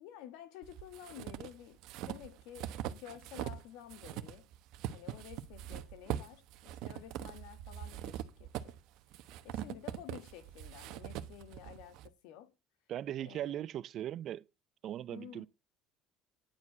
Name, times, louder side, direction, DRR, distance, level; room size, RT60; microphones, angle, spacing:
voice 1, 0.0-1.8 2.1-4.5 4.9-8.8 9.4-12.5 13.2-13.7 15.1-15.5, left 11 dB, 85° left, 1.5 m, -51 dB
sound 1, 0.6-3.6 3.9-12.1, right 12 dB, 75° right, 1.0 m, -42 dB
voice 2, 12.9-14.4 14.8-15.5, right 11 dB, 50° right, 0.5 m, -39 dB
10.5 x 4.8 x 7.4 m
cardioid pair, 120°, 0 cm